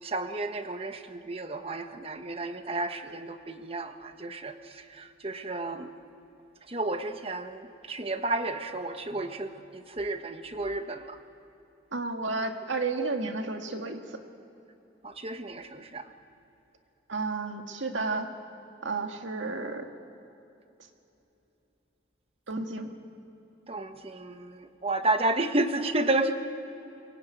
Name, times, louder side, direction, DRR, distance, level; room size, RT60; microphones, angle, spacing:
voice 1, 0.0-5.9 6.7-11.2 15.0-16.1 23.7-26.3, right 2 dB, 30° right, 8 dB, 1.2 m, -32 dB
voice 2, 11.9-14.2 17.1-18.3 18.8-19.9 22.5-22.9, right 3 dB, 80° right, 4 dB, 2.0 m, -32 dB
23.5 x 21.0 x 9.3 m, 2.9 s
head